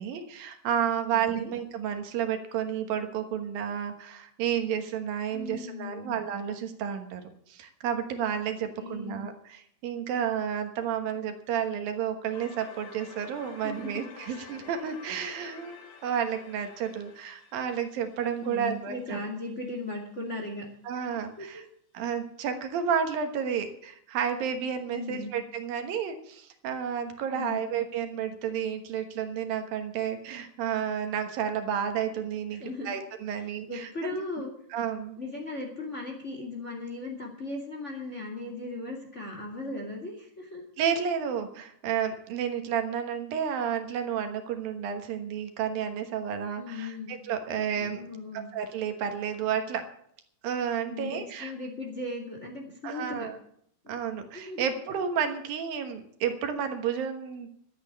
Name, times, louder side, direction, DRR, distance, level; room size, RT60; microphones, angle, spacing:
voice 1, 0.0-7.2 7.5-19.2 20.9-21.6 21.9-34.2 34.7-35.2 40.8-48.0 48.3-49.9 50.4-51.5 52.8-53.4 53.9-57.5, right 8 dB, 75° right, 6 dB, 3.0 m, -31 dB
voice 2, 1.1-1.5 5.3-6.1 8.8-9.2 13.6-14.1 18.4-20.6 21.4-21.5 24.9-25.3 27.3-27.7 32.6-32.9 33.4-34.5 35.2-40.6 46.6-47.1 47.8-48.5 50.9-53.3 53.8-53.9 54.3-54.7, left 2 dB, 25° left, 1 dB, 2.1 m, -37 dB
sound 1, 12.3-19.2, left 5 dB, 85° left, 4.1 m, -49 dB
13.0 x 8.7 x 8.4 m, 0.67 s
omnidirectional pair, 4.3 m